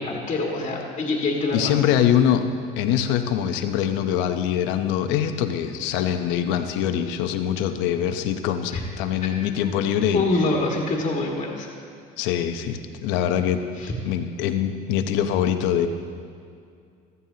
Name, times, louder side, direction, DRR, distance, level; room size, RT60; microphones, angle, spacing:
voice 1, 0.0-1.8 8.7-8.8 10.1-11.7 13.8-13.9, left 2 dB, 35° left, -1 dB, 1.8 m, -25 dB
voice 2, 1.5-2.5 2.8-10.2 12.2-13.6 14.0-15.9, left 10 dB, 80° left, 7 dB, 0.9 m, -23 dB
15.0 x 14.0 x 2.9 m, 2.3 s
supercardioid pair, 100°, 19 cm